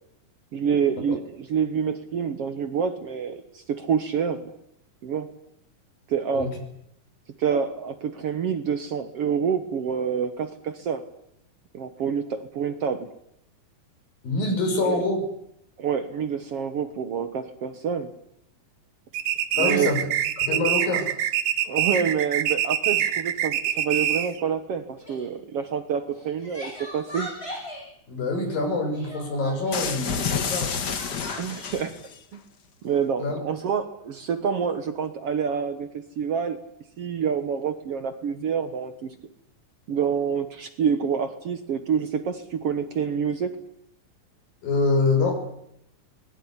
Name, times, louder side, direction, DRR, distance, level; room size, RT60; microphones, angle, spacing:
voice 1, 0.5-4.5 5.0-5.3 6.1-6.5 7.4-11.0 11.7-13.1 14.8-15.0 15.8-18.1 19.5-20.0 21.6-27.3 31.4-32.0 32.3-32.4 32.8-36.6 37.0-39.1 39.9-43.5, right 7 dB, 55° right, 9 dB, 1.8 m, -27 dB
voice 2, 14.2-15.3 19.6-20.1 20.4-21.1 28.1-30.8 33.2-33.4 44.6-45.5, left 2 dB, 85° left, 5 dB, 7.6 m, -25 dB
sound 1, 19.1-24.4, right 10 dB, 80° right, 3.1 m, -25 dB
Crying sobbing, 25.0-25.3 26.1-27.9 28.9-29.9 30.8-31.7, equal, 15° left, 7.7 m, -39 dB
sound 2, 29.7-32.2, left 6 dB, 50° left, 1.3 m, -29 dB
24.0 x 20.5 x 9.8 m, 0.77 s
omnidirectional pair, 4.0 m